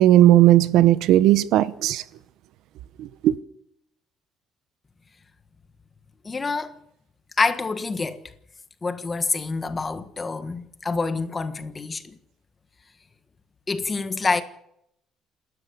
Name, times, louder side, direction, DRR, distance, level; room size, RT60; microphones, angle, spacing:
voice 1, 0.0-2.0 3.0-3.3, right 13 dB, 70° right, 0.9 m, -16 dB
voice 2, 6.2-6.7 7.4-8.2 8.8-12.0 13.7-14.4, left 4 dB, 20° left, 1.4 m, -26 dB
28.5 x 13.0 x 7.0 m
cardioid pair, 160°, 0 cm